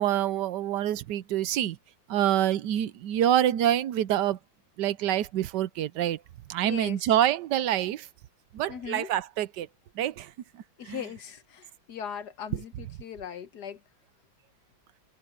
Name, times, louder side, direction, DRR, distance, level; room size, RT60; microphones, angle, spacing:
voice 1, 0.0-1.8 2.1-4.4 4.8-6.2 6.5-8.1 8.5-9.7 10.0-10.3 10.9-11.0, right 11 dB, 70° right, 1.2 m, -26 dB
voice 2, 6.6-7.1 8.7-9.1 10.8-13.8, left 8 dB, 60° left, 1.5 m, -39 dB
omnidirectional pair, 2.1 m